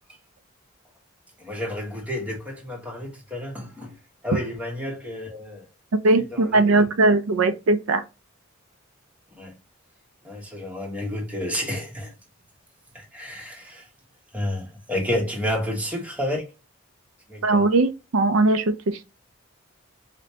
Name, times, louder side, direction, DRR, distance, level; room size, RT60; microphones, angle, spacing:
voice 1, 1.4-4.0 4.2-5.7 6.3-6.9 9.4-9.5 10.2-12.1 12.9-13.9 14.3-16.5 17.3-17.7, left 1 dB, 5° right, 1.1 m, -30 dB
voice 2, 6.0-8.0 17.4-19.0, right 2 dB, 85° right, 0.5 m, -20 dB
5.0 x 2.2 x 2.7 m
head